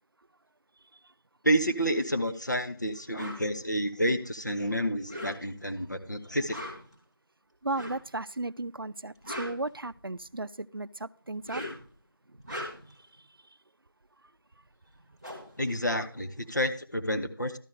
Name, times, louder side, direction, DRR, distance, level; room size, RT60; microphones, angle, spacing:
voice 1, 1.4-6.6 15.6-17.6, equal, 50° left, 0.9 m, -29 dB
sound 1, 3.1-3.4 4.9-5.7 6.4-6.9 7.7-8.1 9.0-10.3 11.3-11.9 12.3-13.0 14.6-14.7 14.9-16.6, equal, 15° left, 1.7 m, -41 dB
voice 2, 7.6-11.6, right 2 dB, 70° right, 0.5 m, -35 dB
12.5 x 6.8 x 4.8 m
figure-of-eight pair, 180°, 12 cm